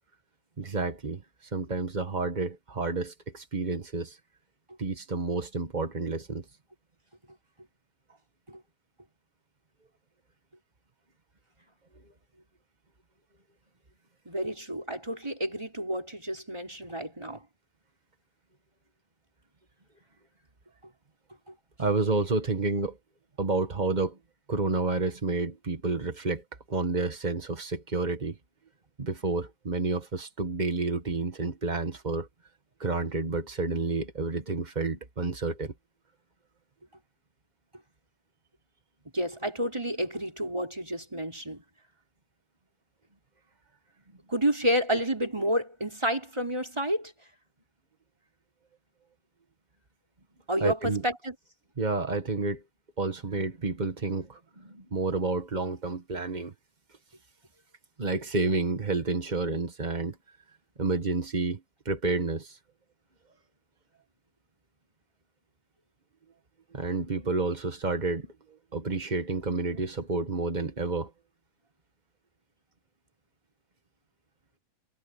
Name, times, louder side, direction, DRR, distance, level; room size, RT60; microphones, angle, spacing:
voice 1, 0.6-4.2 4.8-6.4 21.8-23.0 23.4-24.2 24.5-28.4 29.0-32.3 32.8-35.7 50.6-51.0 51.8-52.6 53.0-56.5 58.0-60.2 60.8-62.6 66.7-68.3 68.7-71.1, right 3 dB, 85° right, 0.4 m, -30 dB
voice 2, 14.2-17.4 21.5-21.6 39.1-41.6 44.3-47.1 50.5-51.3, equal, 10° right, 5.2 m, -30 dB
omnidirectional pair, 3.5 m